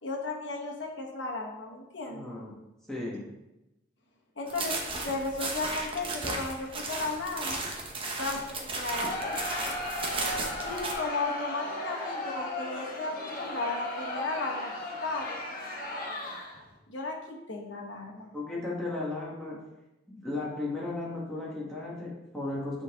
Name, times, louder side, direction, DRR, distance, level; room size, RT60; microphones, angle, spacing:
voice 1, 0.0-2.3 4.4-7.6 8.1-8.5 8.8-9.4 10.6-14.7 15.0-15.4 16.9-18.3, left 3 dB, 65° left, 0 dB, 1.4 m, -35 dB
voice 2, 2.0-2.5 2.9-3.3 18.3-19.6 20.1-22.8, left 2 dB, ahead, -6 dB, 1.6 m, -35 dB
sound 1, 4.5-10.9, right 2 dB, 30° right, 0.9 m, -35 dB
Crowd, 9.0-16.7, left 1 dB, 45° left, 1.4 m, -36 dB
8.7 x 4.0 x 3.7 m, 0.95 s
head